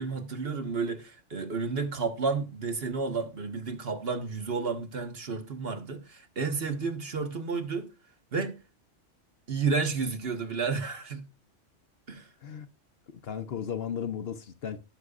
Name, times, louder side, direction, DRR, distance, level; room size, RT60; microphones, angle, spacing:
voice 1, 0.0-7.9 8.3-8.5 9.5-11.2 12.1-12.3, right 4 dB, 55° right, 1.5 m, -31 dB
voice 2, 13.1-14.8, left 8 dB, 60° left, 0.9 m, -35 dB
17.0 x 6.7 x 2.4 m
omnidirectional pair, 1.2 m